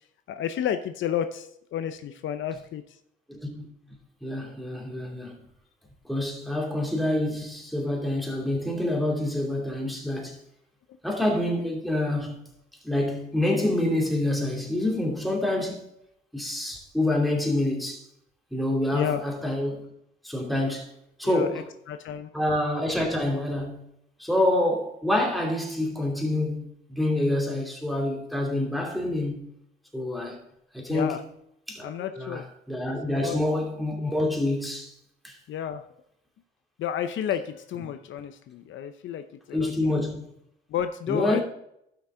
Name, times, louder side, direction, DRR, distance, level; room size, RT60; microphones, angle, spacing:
voice 1, 0.3-3.0 18.9-19.2 21.2-22.3 30.9-31.2 31.8-32.4 33.2-33.4 35.5-35.9 36.8-40.0 40.7-41.4, left 9 dB, 75° left, 0.7 m, -31 dB
voice 2, 3.3-3.7 4.2-5.4 6.1-10.4 11.0-12.4 12.8-15.9 16.3-18.0 18.5-19.9 20.2-20.9 21.2-21.7 22.3-23.9 24.2-29.5 29.9-30.4 30.7-31.2 31.7-32.4 32.7-34.9 35.2-35.4 39.5-40.3 41.1-41.4, left 1 dB, ahead, 2.7 m, -27 dB
12.5 x 6.0 x 3.8 m
cardioid pair, 90°, 20 cm